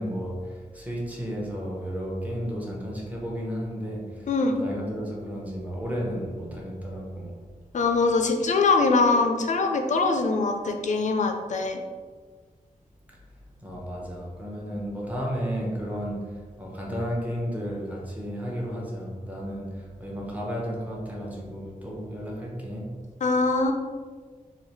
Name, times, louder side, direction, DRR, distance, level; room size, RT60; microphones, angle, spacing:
voice 1, 0.0-7.4 13.1-13.2 13.6-23.0, equal, 10° right, 0.8 m, -33 dB
voice 2, 7.7-11.8 23.2-23.7, left 3 dB, 60° left, 0.4 m, -23 dB
3.9 x 2.8 x 3.1 m
wide cardioid pair, 120°, 14 cm